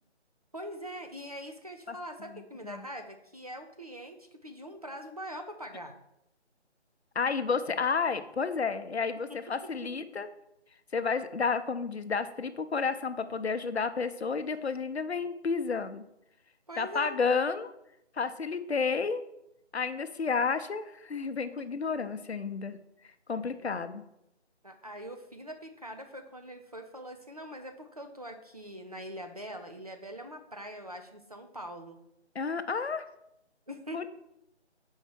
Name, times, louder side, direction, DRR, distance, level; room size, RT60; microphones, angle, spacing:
voice 1, 0.5-5.9 9.3-9.4 9.8-9.9 16.7-17.2 23.6-23.8 24.6-32.0 33.7-34.1, equal, 35° right, 5 dB, 0.6 m, -43 dB
voice 2, 1.9-2.8 7.1-10.3 10.9-16.0 16.8-17.7 18.1-19.2 19.7-22.8 23.3-24.0 32.3-33.0 33.9-34.1, left 5 dB, 65° left, 10 dB, 0.7 m, -31 dB
5.6 x 4.5 x 6.2 m, 0.81 s
figure-of-eight pair, 170°, 34 cm